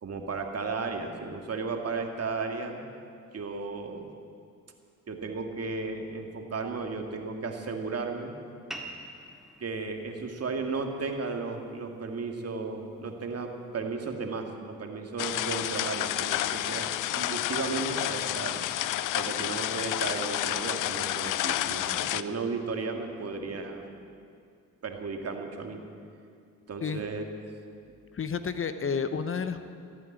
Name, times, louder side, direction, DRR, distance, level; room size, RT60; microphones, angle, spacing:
voice 1, 0.0-2.8 3.3-4.1 5.1-8.3 9.6-16.9 17.1-18.7 19.1-24.0 24.8-25.8 26.7-27.3, right 4 dB, 50° right, 4 dB, 2.0 m, -34 dB
sound 1, 8.7-13.7, right 1 dB, ahead, 2.0 m, -48 dB
sound 2, 15.2-22.2, left 13 dB, 70° left, 0.5 m, -30 dB
voice 2, 28.1-29.7, left 6 dB, 40° left, 11 dB, 0.9 m, -31 dB
15.0 x 9.1 x 8.8 m, 2.3 s
supercardioid pair, 55°, 32 cm